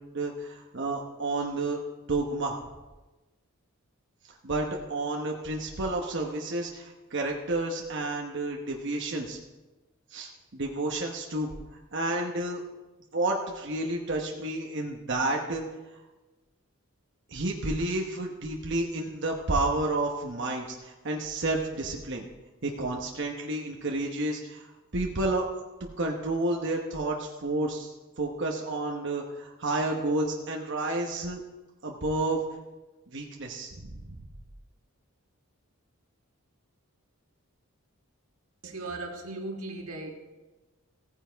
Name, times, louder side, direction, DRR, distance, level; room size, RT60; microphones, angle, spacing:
voice 1, 0.1-1.8 2.1-2.6 4.4-9.4 10.1-11.5 11.9-12.6 13.1-15.6 17.3-22.3 22.6-25.5 26.0-31.4 31.8-32.4 33.1-34.0, right 2 dB, 55° right, 1 dB, 1.0 m, -30 dB
voice 2, 38.6-40.1, right 2 dB, 90° right, 2 dB, 1.6 m, -37 dB
15.5 x 9.6 x 3.5 m, 1.1 s
head